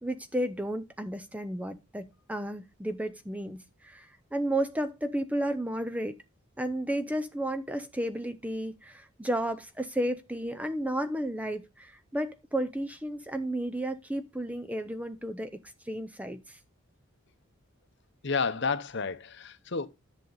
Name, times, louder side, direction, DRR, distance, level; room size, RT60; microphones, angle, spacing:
voice 1, 0.0-6.2 6.6-15.6 15.9-16.6, right 1 dB, 5° right, 0.5 m, -33 dB
voice 2, 18.2-19.9, left 4 dB, 50° left, 0.8 m, -30 dB
10.5 x 6.6 x 3.9 m
head